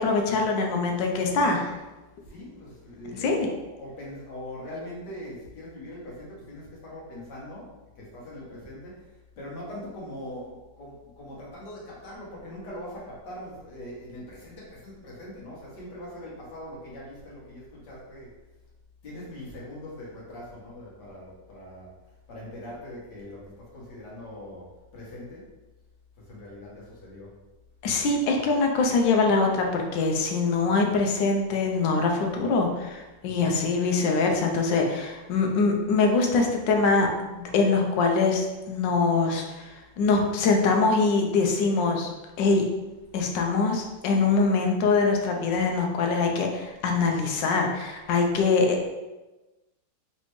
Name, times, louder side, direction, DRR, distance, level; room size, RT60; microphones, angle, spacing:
voice 1, 0.0-1.8 3.1-3.5 27.8-42.1 42.4-42.6 43.1-48.9, left 4 dB, 80° left, 2 dB, 1.3 m, -23 dB
voice 2, 2.3-3.5 3.8-7.7 8.0-9.0 9.4-18.3 19.0-21.9 22.3-24.7 24.9-25.5 26.3-27.3 33.2-33.6, left 1 dB, 65° left, -5 dB, 1.8 m, -41 dB
4.1 x 3.2 x 3.1 m, 1.1 s
omnidirectional pair, 2.0 m